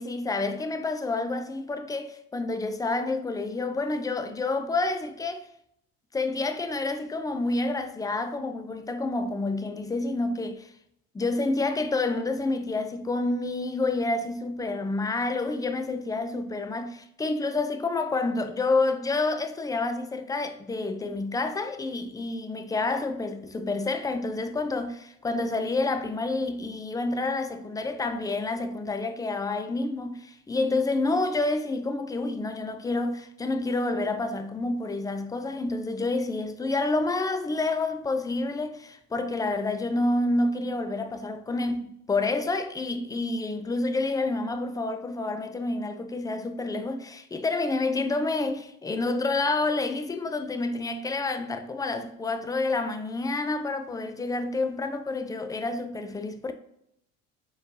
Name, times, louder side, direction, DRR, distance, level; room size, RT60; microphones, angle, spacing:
voice 1, 0.0-5.5 6.1-10.7 11.1-56.5, left 2 dB, 10° left, 0.4 m, -28 dB
4.3 x 4.0 x 2.7 m
supercardioid pair, 90°, 31 cm